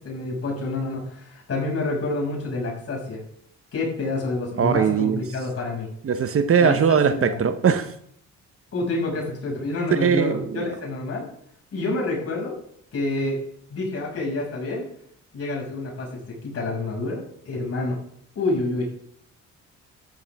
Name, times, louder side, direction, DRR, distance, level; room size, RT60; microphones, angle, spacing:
voice 1, 0.0-3.2 3.7-5.9 6.6-7.4 8.7-11.3 11.7-12.5 12.9-13.4 13.7-14.9 15.3-16.1 16.4-18.0 18.3-18.9, left 2 dB, 50° left, -2 dB, 6.6 m, -28 dB
voice 2, 4.6-5.2 6.0-7.9 9.9-10.7, right 7 dB, 50° right, 10 dB, 1.1 m, -20 dB
13.5 x 12.0 x 3.6 m, 0.66 s
cardioid pair, 90°, 30 cm